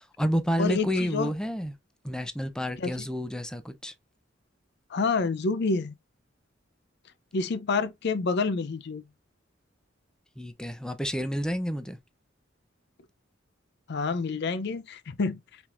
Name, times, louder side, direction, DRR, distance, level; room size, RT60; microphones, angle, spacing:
voice 1, 0.0-1.8 2.0-3.9 10.4-12.0, equal, 5° left, 0.5 m, -30 dB
voice 2, 0.6-1.3 2.8-2.9 4.9-5.9 7.3-9.0 13.9-15.4, left 4 dB, 60° left, 0.5 m, -28 dB
5.7 x 3.4 x 2.5 m
head